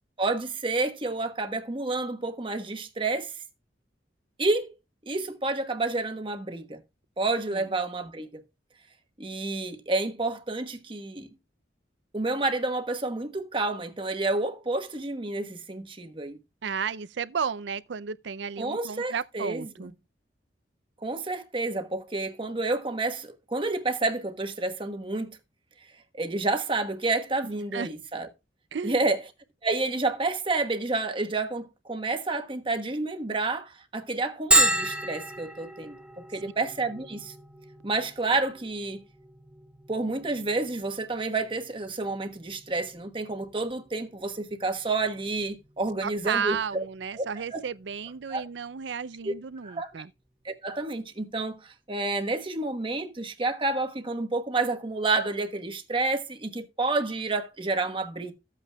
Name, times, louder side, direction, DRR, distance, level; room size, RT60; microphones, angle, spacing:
voice 1, 0.2-3.4 4.4-4.7 5.1-6.8 7.2-8.4 9.2-11.3 12.1-16.4 18.6-19.9 21.0-25.4 26.1-28.3 28.8-29.2 29.6-36.0 36.3-37.3 37.8-39.0 39.9-46.9 47.1-47.6 48.3-48.4 49.2-49.3 49.6-49.9 50.4-58.3, right 3 dB, 30° right, 1.3 m, -29 dB
voice 2, 16.6-19.9 27.5-27.9 28.7-29.0 46.0-50.1, right 6 dB, 75° right, 0.5 m, -33 dB
Bell, 34.5-49.9, right 1 dB, 5° right, 1.1 m, -33 dB
14.0 x 8.4 x 2.3 m
head